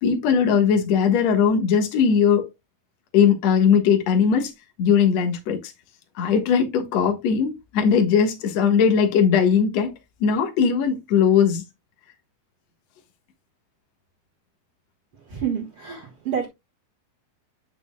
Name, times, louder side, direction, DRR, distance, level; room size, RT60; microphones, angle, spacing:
voice 1, 0.0-2.4 3.1-4.5 4.8-5.7 6.2-9.9 10.2-11.6, left 7 dB, 60° left, 2.5 m, -19 dB
voice 2, 15.3-16.5, right 8 dB, 50° right, 2.3 m, -28 dB
8.9 x 7.1 x 2.2 m
omnidirectional pair, 3.7 m